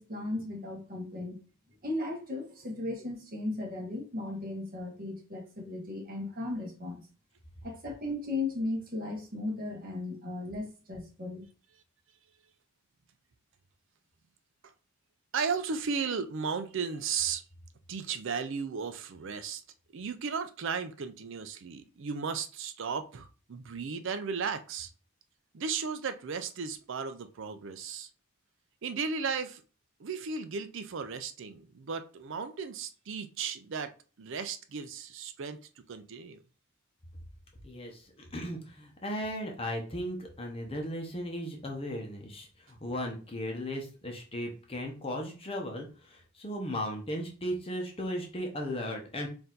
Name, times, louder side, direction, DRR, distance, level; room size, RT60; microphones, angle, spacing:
voice 1, 0.0-1.4 1.8-7.1 7.6-11.5, left 2 dB, 40° right, 1.3 m, -36 dB
voice 2, 15.3-17.4 17.9-19.6 19.9-24.9 25.5-28.1 28.8-29.6 30.0-36.4, right 5 dB, 55° right, 0.5 m, -35 dB
voice 3, 37.6-49.3, equal, 25° left, 0.8 m, -36 dB
4.5 x 2.7 x 3.8 m
head